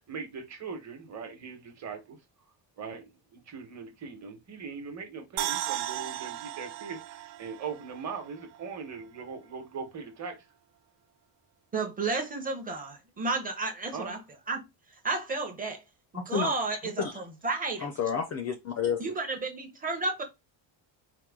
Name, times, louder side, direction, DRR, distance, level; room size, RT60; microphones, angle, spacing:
voice 1, 0.0-2.2 2.8-10.4 13.9-14.1, right 5 dB, 35° right, 1.1 m, -40 dB
sound 1, 5.4-8.6 8.9-9.0, right 15 dB, 65° right, 0.5 m, -36 dB
voice 2, 11.7-14.2 14.5-14.7 15.0-15.8 16.1-17.9 19.0-20.2, right 3 dB, 20° right, 0.7 m, -32 dB
voice 3, 16.1-16.5 17.8-19.0, left 7 dB, 35° left, 0.4 m, -30 dB
4.6 x 2.2 x 3.5 m
cardioid pair, 170°, 48 cm